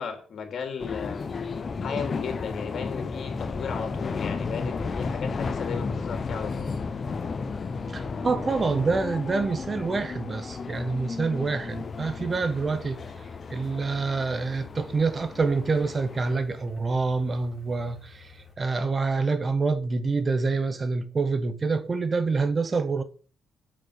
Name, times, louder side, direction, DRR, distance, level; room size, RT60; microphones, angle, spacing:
voice 1, 0.0-1.4 1.8-6.8, left 6 dB, 55° left, 3.6 m, -35 dB
sound 1, 0.8-16.3, left 4 dB, 40° left, 1.1 m, -33 dB
voice 2, 7.9-13.0 13.5-23.0, right 4 dB, 35° right, 1.1 m, -27 dB
sound 2, 11.7-18.6, left 5 dB, 10° left, 4.2 m, -48 dB
7.5 x 7.3 x 6.8 m
cardioid pair, 90°, 0 cm